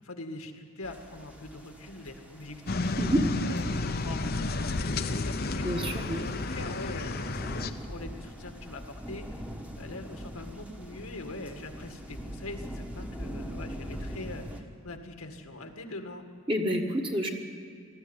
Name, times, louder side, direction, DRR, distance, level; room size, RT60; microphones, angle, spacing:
voice 1, 0.0-3.0 3.4-9.4 9.8-16.2, left 2 dB, 85° left, 4 dB, 2.0 m, -43 dB
sound 1, 0.8-14.6, equal, 5° right, 1.3 m, -43 dB
sound 2, 2.7-7.7, left 2 dB, 45° left, 0.8 m, -31 dB
voice 2, 5.6-6.2 16.5-17.3, equal, 25° right, 2 dB, 1.6 m, -28 dB
20.0 x 14.0 x 10.0 m, 2.1 s
head